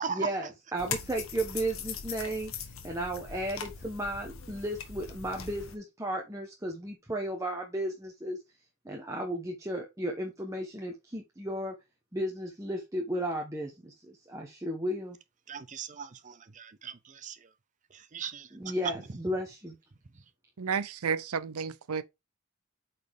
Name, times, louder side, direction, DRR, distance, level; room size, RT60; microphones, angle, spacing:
voice 1, 0.1-2.5 2.8-8.4 8.8-11.8 12.1-15.2 18.5-19.8, right 1 dB, 15° right, 1.1 m, -34 dB
sound 1, 0.8-5.8, left 7 dB, 65° left, 1.3 m, -40 dB
voice 2, 15.5-17.5 17.9-18.7, right 6 dB, 35° right, 0.5 m, -38 dB
voice 3, 20.6-22.0, right 6 dB, 80° right, 0.6 m, -31 dB
8.3 x 4.3 x 3.6 m
head